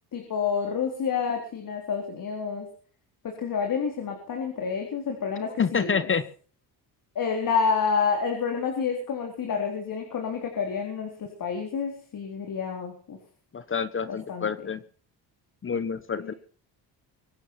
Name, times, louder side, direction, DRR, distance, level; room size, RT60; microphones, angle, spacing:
voice 1, 0.1-2.7 3.2-6.1 7.1-13.2 14.0-14.5 16.2-16.4, left 6 dB, 50° left, 3 dB, 4.1 m, -29 dB
voice 2, 5.6-6.2 13.5-14.8 15.6-16.3, left 6 dB, 30° left, 15 dB, 1.1 m, -27 dB
23.5 x 9.1 x 5.9 m, 0.43 s
cardioid pair, 100°, 41 cm